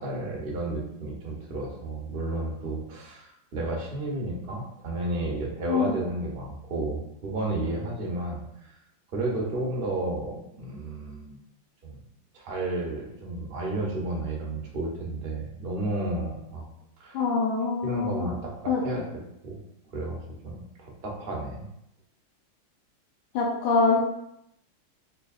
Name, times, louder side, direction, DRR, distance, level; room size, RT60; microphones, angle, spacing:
voice 1, 0.0-8.7 9.1-11.4 11.8-12.0 12.3-16.6 17.0-17.2 17.8-19.0 19.4-19.6 19.9-21.7, right 2 dB, 55° right, -2 dB, 0.6 m, -32 dB
voice 2, 17.1-18.2 18.7-18.8 23.3-24.0, left 4 dB, 80° left, -1 dB, 1.3 m, -24 dB
5.0 x 2.6 x 2.4 m, 0.79 s
omnidirectional pair, 2.1 m